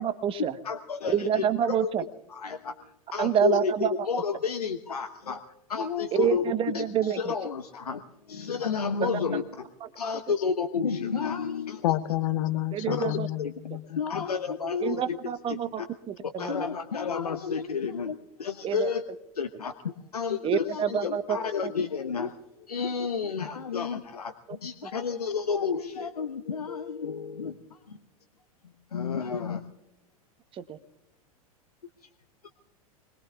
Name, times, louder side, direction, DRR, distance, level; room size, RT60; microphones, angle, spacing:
voice 1, 0.0-0.5 1.1-2.0 3.2-3.9 6.1-7.3 9.0-9.2 12.7-13.3 14.8-16.7 18.6-18.9 20.4-21.4 21.6-21.7 30.6-30.8, right 9 dB, 30° right, 12 dB, 1.0 m, -27 dB
voice 2, 0.6-1.9 2.3-5.4 5.7-6.4 6.7-9.6 10.0-11.8 12.9-13.1 13.4-13.5 13.9-15.9 16.4-19.0 19.3-22.4 22.7-28.0 28.9-29.6, left 6 dB, 85° left, 9 dB, 0.9 m, -31 dB
voice 3, 11.8-14.2, left 14 dB, 60° left, 12 dB, 1.0 m, -29 dB
25.5 x 20.5 x 2.4 m, 0.96 s
figure-of-eight pair, 95°, 19 cm